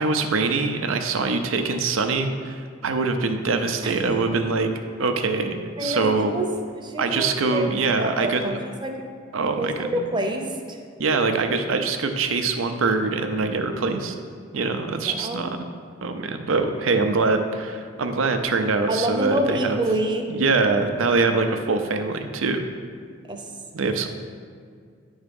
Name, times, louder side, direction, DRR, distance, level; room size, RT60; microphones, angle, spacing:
voice 1, 0.0-4.7 5.0-6.3 7.0-8.6 9.3-10.1 11.0-14.1 14.5-15.6 16.0-19.8 20.3-22.6 23.7-24.1, right 3 dB, 90° right, 7 dB, 0.6 m, -23 dB
voice 2, 3.8-4.2 5.8-6.5 6.8-8.9 9.6-10.8 15.0-15.5 18.9-20.2 23.2-23.4, right 1 dB, 25° right, 3 dB, 0.7 m, -27 dB
9.9 x 3.6 x 5.2 m, 2.1 s
head